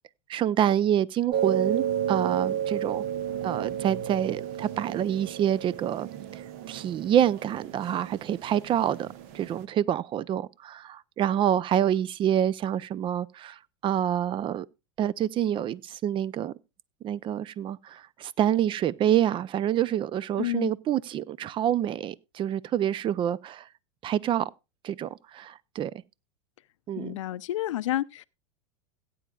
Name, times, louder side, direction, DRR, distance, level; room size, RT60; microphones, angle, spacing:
voice 1, 0.3-3.0 3.4-6.4 6.7-9.1 9.3-14.7 15.0-16.5 17.0-23.7 24.0-24.5 24.8-25.9 26.9-27.1, right 10 dB, 35° right, 0.5 m, -27 dB
sound 1, 1.3-9.6, right 9 dB, 60° right, 1.2 m, -32 dB
voice 2, 20.4-20.7 26.9-28.2, left 14 dB, 80° left, 0.5 m, -30 dB
17.0 x 9.3 x 2.4 m
hypercardioid pair, 105°, 16 cm